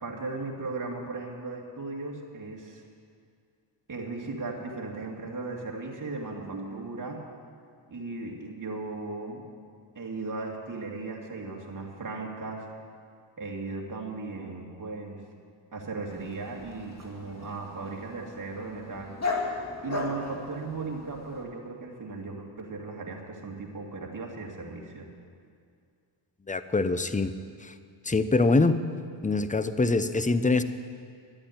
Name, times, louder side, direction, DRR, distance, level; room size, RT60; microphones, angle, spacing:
voice 1, 0.0-2.8 3.9-7.2 7.9-9.4 9.9-12.7 13.4-15.2 15.7-19.1 19.8-25.1, right 3 dB, 40° right, -1 dB, 2.5 m, -37 dB
Dog, 16.1-21.4, left 3 dB, 35° left, 2.4 m, -37 dB
voice 2, 26.5-27.3 27.6-27.7 28.0-28.8 29.2-30.6, left 3 dB, 15° left, 12 dB, 0.7 m, -24 dB
11.5 x 8.6 x 9.4 m, 2.2 s
cardioid pair, 70°, 46 cm